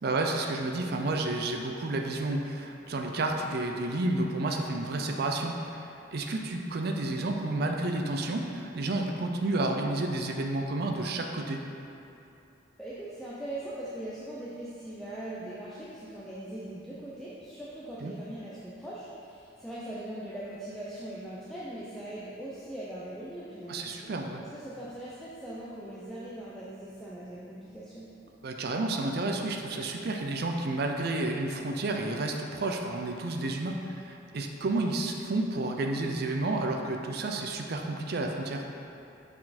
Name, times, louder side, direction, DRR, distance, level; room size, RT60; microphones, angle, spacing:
voice 1, 0.0-11.6 18.0-18.1 23.7-24.4 28.4-38.6, right 2 dB, 55° right, 2 dB, 0.5 m, -31 dB
voice 2, 12.8-23.9 24.4-28.1, right 1 dB, ahead, -9 dB, 0.6 m, -40 dB
6.4 x 4.4 x 4.2 m, 2.8 s
head